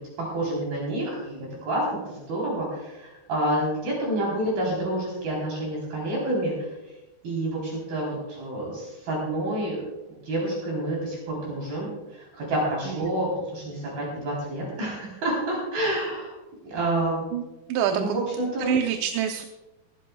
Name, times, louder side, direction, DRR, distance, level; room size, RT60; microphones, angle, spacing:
voice 1, 0.2-6.7 7.2-9.8 10.1-16.3 16.6-17.2 17.9-18.7, right 1 dB, 55° right, -3 dB, 5.4 m, -28 dB
voice 2, 18.7-19.5, right 9 dB, 85° right, 5 dB, 3.0 m, -25 dB
19.5 x 16.5 x 2.3 m, 1.0 s
omnidirectional pair, 5.0 m